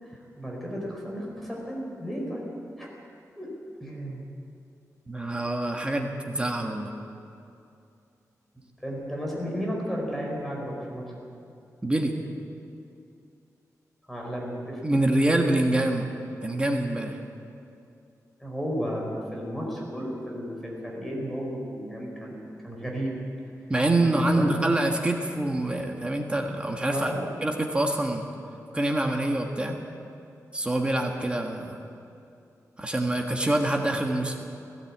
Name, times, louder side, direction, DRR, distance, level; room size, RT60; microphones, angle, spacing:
voice 1, 0.0-2.4 2.8-2.9 3.3-3.5 3.8-4.3 8.8-11.0 14.1-14.8 18.4-22.4 22.6-23.1 24.0-24.4 26.9-27.3, equal, 5° left, -3 dB, 4.6 m, -33 dB
voice 2, 5.1-6.9 11.8-12.1 14.8-16.0 16.4-17.2 23.7-27.1 27.4-28.2 28.7-29.8 30.5-31.8 32.8-34.4, right 1 dB, 15° right, 2 dB, 1.5 m, -25 dB
17.5 x 17.5 x 8.7 m, 2.6 s
wide cardioid pair, 150°, 6 cm